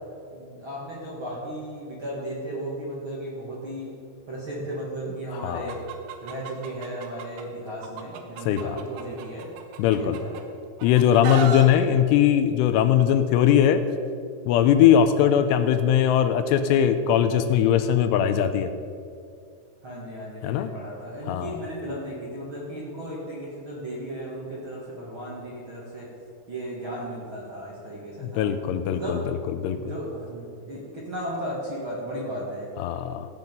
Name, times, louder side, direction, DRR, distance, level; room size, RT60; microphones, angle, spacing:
voice 1, 0.3-3.9 4.3-5.9 6.2-9.5 9.9-10.4 19.8-26.1 26.5-28.5 28.9-29.3 29.7-32.7, right 1 dB, 45° right, -6 dB, 1.8 m, -35 dB
voice 2, 5.3-5.8 8.5-8.8 9.8-10.2 10.8-13.8 14.5-18.7 20.4-20.7 21.3-21.6 28.2-29.2 29.6-29.8 32.8-33.3, left 9 dB, 80° left, 10 dB, 2.7 m, -20 dB
Chicken rooster, 5.7-7.4 7.8-10.4 10.8-11.7, right 7 dB, 85° right, 3.2 m, -34 dB
16.0 x 8.2 x 5.3 m, 2.4 s
omnidirectional pair, 5.0 m